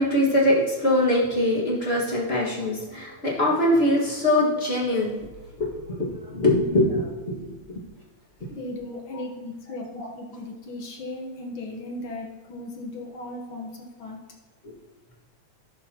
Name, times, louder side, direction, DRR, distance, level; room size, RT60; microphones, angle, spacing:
voice 1, 0.0-5.2 5.6-7.5 10.0-10.1, left 1 dB, 30° left, -5 dB, 1.2 m, -23 dB
voice 2, 8.5-14.2, left 2 dB, 60° left, 0 dB, 1.4 m, -37 dB
15.0 x 6.5 x 2.9 m, 1.2 s
omnidirectional pair, 3.4 m